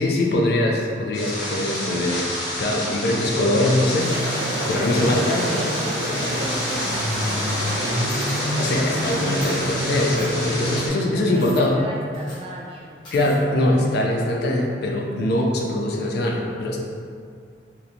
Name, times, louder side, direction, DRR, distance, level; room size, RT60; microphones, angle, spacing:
voice 1, 0.0-2.3 2.6-5.5 8.6-11.8 13.1-16.8, left 1 dB, 60° left, 0 dB, 0.3 m, -22 dB
sound 1, 1.1-10.9, left 1 dB, 80° left, 1.1 m, -29 dB
sound 2, 4.0-10.9, equal, 90° right, 0.6 m, -27 dB
voice 2, 5.2-8.1 11.3-13.0, equal, 30° right, -3 dB, 0.3 m, -35 dB
sound 3, 8.1-8.4 8.9-9.0 9.3-9.5 10.2-10.3 11.3-11.6 12.1-12.4 13.0-13.4, equal, 25° left, 1.0 m, -42 dB
3.0 x 2.0 x 2.5 m, 2.2 s
head